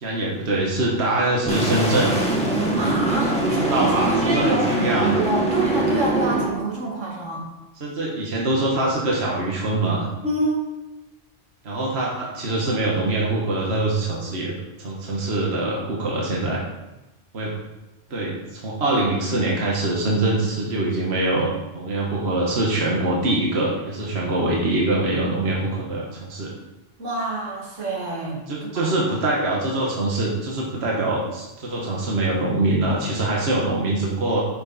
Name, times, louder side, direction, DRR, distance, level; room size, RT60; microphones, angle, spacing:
voice 1, 0.0-2.1 3.7-5.1 7.8-10.1 11.6-14.5 14.8-16.6 17.3-17.5 18.1-21.5 21.7-26.5 28.5-34.5, right 2 dB, 55° right, -3 dB, 1.7 m, -23 dB
sound 1, 1.5-6.5, right 1 dB, 5° left, 1.8 m, -23 dB
voice 2, 2.8-7.4 10.2-10.6 18.8-19.0 19.4-19.5 27.0-29.0, right 2 dB, 75° right, -3 dB, 2.6 m, -26 dB
10.0 x 6.7 x 4.1 m, 1.0 s
omnidirectional pair, 1.3 m